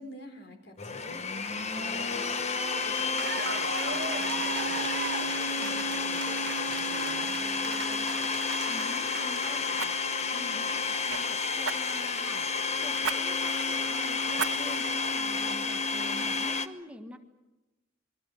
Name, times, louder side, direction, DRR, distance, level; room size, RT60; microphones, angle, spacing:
voice 1, 0.0-8.4, left 1 dB, 60° left, 5 dB, 4.3 m, -48 dB
Domestic sounds home sounds, 0.8-16.7, left 4 dB, 35° left, 1.2 m, -30 dB
Cheering / Applause, 2.7-10.2, right 6 dB, 60° right, 1.3 m, -39 dB
Fire, 7.6-7.8 9.7-11.2 11.6-12.2 13.0-13.2 13.6-13.7 14.3-15.0 15.5-15.6, right 6 dB, 80° right, 1.2 m, -36 dB
voice 2, 8.7-10.0 10.3-12.5 12.8-17.2, equal, 5° right, 4 dB, 1.6 m, -46 dB
28.5 x 22.5 x 6.5 m, 1.1 s
head